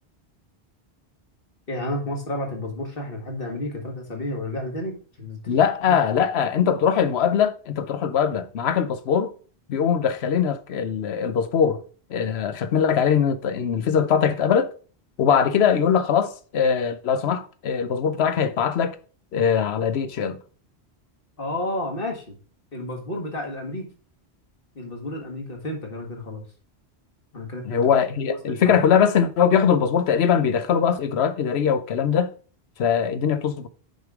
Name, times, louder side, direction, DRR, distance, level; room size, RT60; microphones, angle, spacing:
voice 1, 1.7-6.0 21.4-22.4 22.7-23.9 24.8-26.4 27.3-27.8 28.3-28.8, left 1 dB, 60° left, 2.0 m, -31 dB
voice 2, 5.5-9.3 9.7-11.8 12.1-14.7 15.2-19.0 19.3-20.4 27.6-32.3 32.8-33.7, left 7 dB, 75° left, 1.0 m, -21 dB
6.4 x 5.2 x 4.7 m
omnidirectional pair, 1.1 m